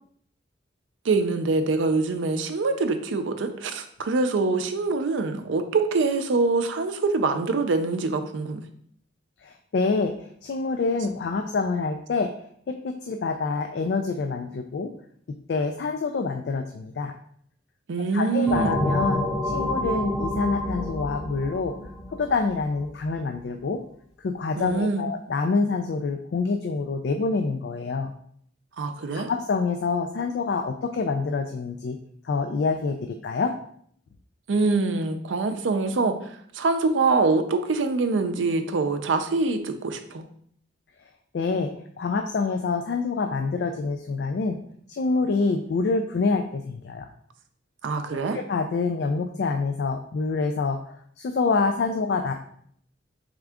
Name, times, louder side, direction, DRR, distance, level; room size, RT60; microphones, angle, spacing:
voice 1, 1.0-8.6 17.9-18.8 24.6-25.1 28.8-29.3 34.5-40.2 47.8-48.4, right 3 dB, 85° right, 8 dB, 0.5 m, -24 dB
voice 2, 9.4-12.3 12.7-14.9 15.5-17.1 18.1-21.7 22.2-23.8 24.2-28.1 29.1-32.0 32.2-33.5 41.3-41.7 42.0-44.6 44.9-47.1 48.3-50.8 51.2-52.3, left 4 dB, 60° left, 5 dB, 0.3 m, -26 dB
sound 1, 18.5-22.9, left 1 dB, 5° right, 0.7 m, -28 dB
3.6 x 3.6 x 3.5 m, 0.64 s
head